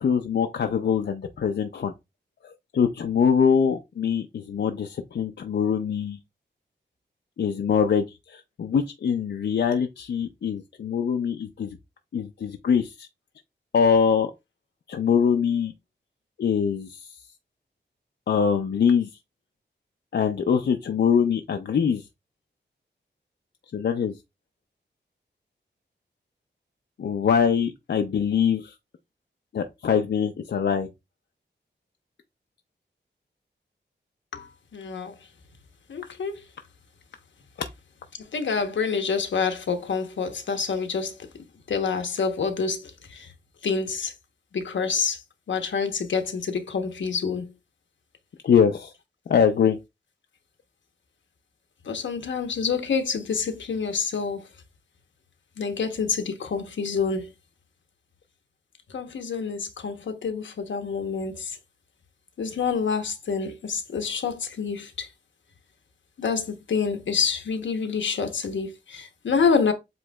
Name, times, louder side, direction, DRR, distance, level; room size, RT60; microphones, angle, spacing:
voice 1, 0.0-1.9 2.4-6.2 7.4-11.8 12.1-13.1 13.7-14.3 14.9-15.7 16.4-17.1 18.3-19.1 20.1-22.0 23.7-24.2 27.0-28.7 29.5-30.9 37.6-37.7 48.4-48.9 49.3-49.8, left 7 dB, 65° left, 0.5 m, -23 dB
voice 2, 34.3-35.1 35.9-36.4 38.3-41.1 41.7-43.3 43.6-44.1 44.5-45.2 45.5-47.5 51.9-54.4 55.6-57.3 58.9-61.6 62.4-65.1 66.2-69.7, left 5 dB, 85° left, 0.9 m, -27 dB
7.7 x 3.1 x 2.3 m
wide cardioid pair, 140°, 19 cm